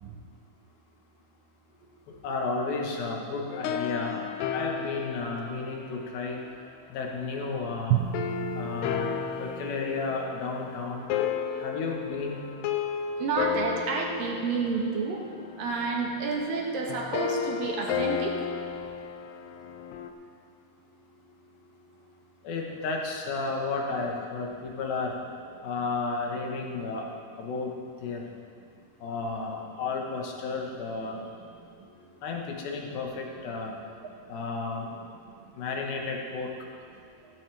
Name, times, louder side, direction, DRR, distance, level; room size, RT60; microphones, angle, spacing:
voice 1, 2.2-4.2 4.5-6.4 6.9-8.0 8.5-9.1 9.4-11.1 11.6-12.5 22.4-25.1 25.6-27.0 27.4-27.7 28.0-28.3 29.0-31.2 32.2-33.7 34.3-34.9 35.6-36.5, left 4 dB, 70° left, 0 dB, 3.0 m, -32 dB
sound 1, 3.5-6.8 8.1-20.1, left 7 dB, 90° left, 2.8 m, -33 dB
Drum, 7.9-10.9, right 12 dB, 90° right, 1.9 m, -32 dB
voice 2, 13.2-15.2 15.6-18.3, right 4 dB, 65° right, 0 dB, 2.8 m, -29 dB
15.0 x 13.5 x 3.5 m, 2.3 s
omnidirectional pair, 4.6 m